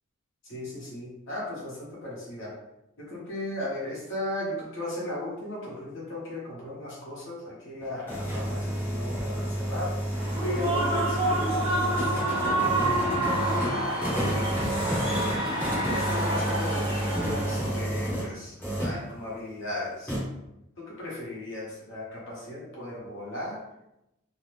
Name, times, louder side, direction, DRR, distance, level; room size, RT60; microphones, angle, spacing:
voice 1, 0.5-2.6 3.0-10.0 10.4-14.2 14.9-20.2 20.8-23.6, left 1 dB, 65° left, -6 dB, 1.1 m, -37 dB
sound 1, 7.8-18.3 18.6-19.0 20.1-20.2, right 1 dB, 10° left, 0.9 m, -30 dB
Human voice / Cheering / Applause, 10.1-17.8, right 1 dB, 25° right, 0.9 m, -28 dB
2.8 x 2.1 x 3.2 m, 0.88 s
head